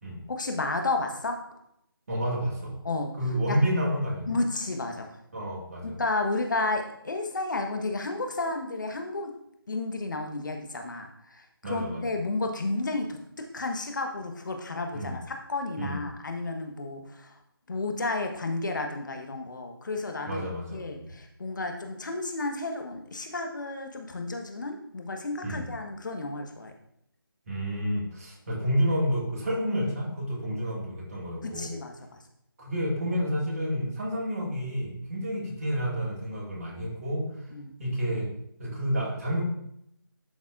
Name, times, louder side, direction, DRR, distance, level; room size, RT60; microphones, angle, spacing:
voice 1, 0.3-1.4 2.8-3.1 3.5-3.6 4.3-5.1 5.8-9.3 9.7-17.3 17.7-20.4 20.7-26.7 31.4-31.9 37.5-37.7, left 2 dB, 55° left, 4 dB, 1.2 m, -32 dB
voice 2, 2.1-2.8 3.1-4.4 5.3-6.0 11.6-12.2 14.9-15.2 15.8-16.0 20.3-21.1 25.4-25.7 27.5-31.8 32.6-37.5 37.8-38.3 38.6-39.4, equal, 40° right, -3 dB, 2.0 m, -30 dB
11.5 x 4.0 x 2.5 m, 0.75 s
figure-of-eight pair, 165°, 13 cm